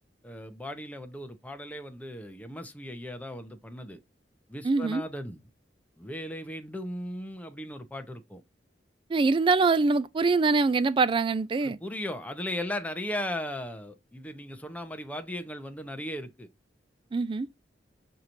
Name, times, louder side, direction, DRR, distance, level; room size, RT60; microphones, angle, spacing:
voice 1, 0.2-4.0 4.5-5.4 6.0-8.4 11.6-16.5, left 1 dB, 10° left, 0.7 m, -37 dB
voice 2, 4.6-5.0 9.1-11.8 17.1-17.5, right 4 dB, 30° right, 0.3 m, -24 dB
6.5 x 2.9 x 2.5 m
head